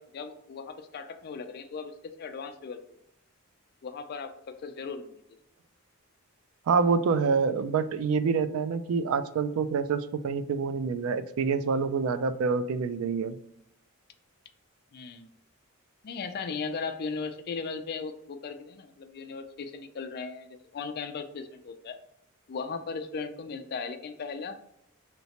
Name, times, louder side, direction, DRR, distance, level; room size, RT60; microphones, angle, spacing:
voice 1, 0.0-3.0 3.8-5.1 14.9-15.3 16.0-22.0 22.5-24.6, left 5 dB, 50° left, 7 dB, 0.4 m, -37 dB
voice 2, 6.7-13.4, right 5 dB, 75° right, 12 dB, 0.3 m, -27 dB
3.2 x 3.0 x 2.8 m, 0.78 s
head